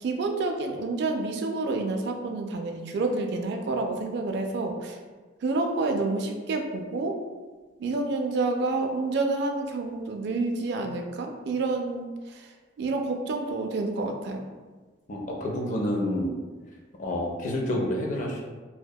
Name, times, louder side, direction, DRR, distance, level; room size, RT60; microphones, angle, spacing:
voice 1, 0.0-5.0 5.4-7.2 7.8-12.5 12.8-14.4, right 3 dB, 60° right, 3 dB, 0.3 m, -28 dB
voice 2, 15.1-16.3 17.0-18.4, left 1 dB, 40° left, -1 dB, 0.4 m, -28 dB
2.7 x 2.1 x 2.2 m, 1.3 s
head